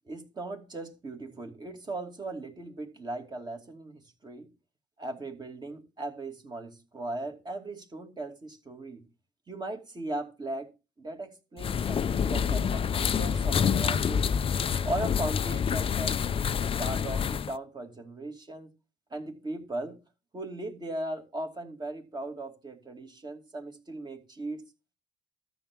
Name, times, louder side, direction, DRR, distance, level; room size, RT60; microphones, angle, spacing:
voice 1, 0.1-4.5 5.0-9.0 9.5-10.7 11.0-14.3 14.8-16.2 16.5-18.7 19.1-20.0 20.3-24.6, right 2 dB, 25° right, 2.4 m, -38 dB
sound 1, 11.6-17.6, left 7 dB, 35° left, 0.5 m, -27 dB
13.0 x 7.1 x 4.7 m
cardioid pair, 110°, 17 cm